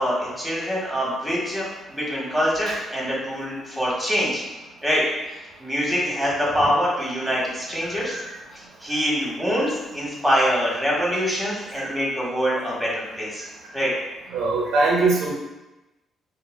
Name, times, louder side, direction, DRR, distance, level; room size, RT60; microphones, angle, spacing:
voice 1, 0.0-4.4 4.8-5.0 5.3-8.2 8.5-13.5 13.7-13.9, equal, ahead, -6 dB, 1.4 m, -24 dB
voice 2, 14.3-15.3, right 3 dB, 75° right, -2 dB, 0.7 m, -22 dB
5.3 x 2.1 x 2.2 m, 1.0 s
cardioid pair, 90°, 0 cm